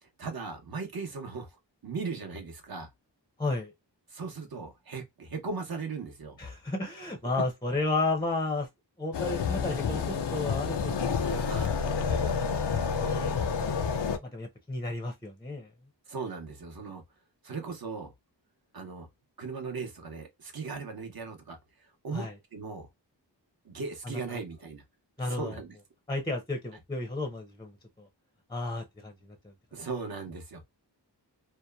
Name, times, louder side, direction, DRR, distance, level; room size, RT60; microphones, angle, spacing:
voice 1, 0.0-2.9 4.1-6.4 11.5-11.7 16.1-17.0 17.4-18.1 18.7-19.1 19.4-22.9 23.6-24.8 25.2-25.7 29.7-30.6, right 4 dB, 55° right, 0.8 m, -38 dB
voice 2, 3.4-3.7 6.4-8.7 9.0-10.0 10.3-11.5 12.1-13.9 14.2-15.7 22.1-22.3 24.0-24.4 25.2-25.6 26.1-28.1 28.5-29.5, left 2 dB, 10° left, 0.6 m, -33 dB
sound 1, 9.1-14.2, left 6 dB, 70° left, 0.5 m, -29 dB
2.8 x 2.1 x 2.2 m
wide cardioid pair, 60°, 44 cm